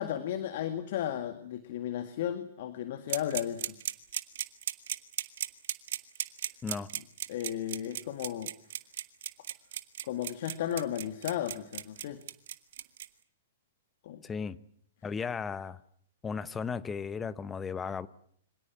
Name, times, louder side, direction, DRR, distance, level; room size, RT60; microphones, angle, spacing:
voice 1, 0.0-3.8 7.3-8.5 10.0-12.2 14.0-14.2, left 10 dB, 60° left, 1.9 m, -34 dB
sound 1, 3.1-13.1, right 11 dB, 65° right, 1.7 m, -35 dB
voice 2, 14.2-14.6 15.0-15.8 16.2-18.1, left 5 dB, 15° left, 1.1 m, -35 dB
25.5 x 17.5 x 9.3 m
hypercardioid pair, 135°, 0 cm